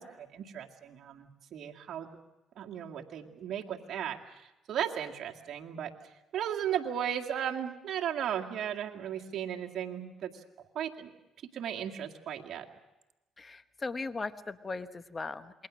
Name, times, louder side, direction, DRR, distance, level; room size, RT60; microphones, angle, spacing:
voice 1, 0.0-2.1 2.6-4.2 4.7-5.9 6.3-10.3 10.8-11.1 11.5-12.7, right 9 dB, 65° right, 2 dB, 2.1 m, -35 dB
voice 2, 13.4-15.7, left 3 dB, 30° left, 11 dB, 1.2 m, -38 dB
27.5 x 22.0 x 6.3 m, 1.0 s
supercardioid pair, 75°, 0 cm